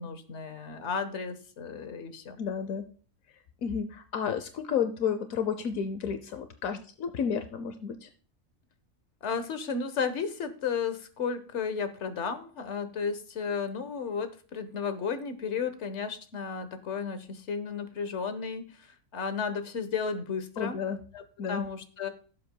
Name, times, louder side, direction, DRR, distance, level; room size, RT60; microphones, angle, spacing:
voice 1, 0.0-2.4 9.2-20.8 21.1-21.2 21.5-22.1, left 6 dB, 60° left, 9 dB, 1.4 m, -33 dB
voice 2, 2.4-2.9 3.6-8.1 20.6-21.0 21.4-21.6, left 7 dB, 80° left, 9 dB, 1.2 m, -31 dB
16.5 x 7.6 x 2.2 m, 0.41 s
omnidirectional pair, 1.4 m